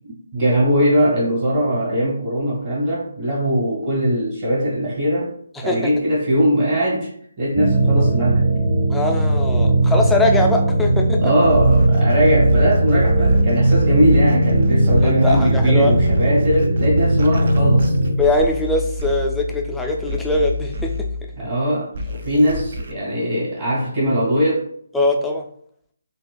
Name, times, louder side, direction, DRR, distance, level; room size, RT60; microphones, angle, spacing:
voice 1, 0.1-5.3 5.6-7.1 7.4-8.5 11.2-17.9 21.4-24.6, equal, 35° right, -7 dB, 1.3 m, -20 dB
sound 1, 7.5-18.1, right 1 dB, 20° right, 1.0 m, -18 dB
voice 2, 8.9-11.3 15.0-15.9 18.2-21.1 24.9-25.5, left 2 dB, 5° left, 1 dB, 0.3 m, -21 dB
sound 2, 11.4-21.5 21.9-22.9, right 1 dB, 60° right, 0.5 m, -25 dB
3.7 x 2.4 x 2.3 m, 0.65 s
hypercardioid pair, 155°, 0 cm